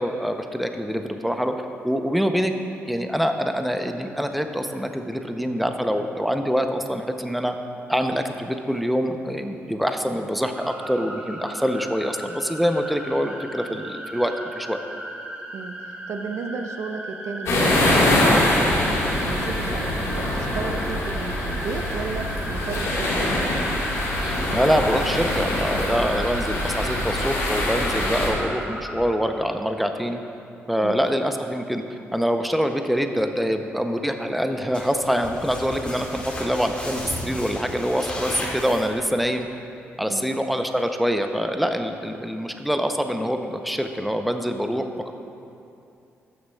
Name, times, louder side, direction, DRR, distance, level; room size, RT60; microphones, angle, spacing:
voice 1, 0.0-1.6 1.8-2.5 2.9-7.6 7.9-14.8 24.2-30.2 30.7-39.5 40.0-45.1, equal, ahead, 6 dB, 0.5 m, -25 dB
sound 1, 10.5-29.1, right 1 dB, 20° right, 1.2 m, -37 dB
voice 2, 15.5-23.3 30.8-31.0 40.1-40.2, right 4 dB, 70° right, 6 dB, 0.5 m, -34 dB
sound 2, 17.5-28.3, left 1 dB, 75° left, 1.5 m, -23 dB
sound 3, 34.7-39.2, left 1 dB, 20° left, 1.7 m, -34 dB
12.0 x 6.3 x 2.2 m, 2.7 s
supercardioid pair, 65°, 5 cm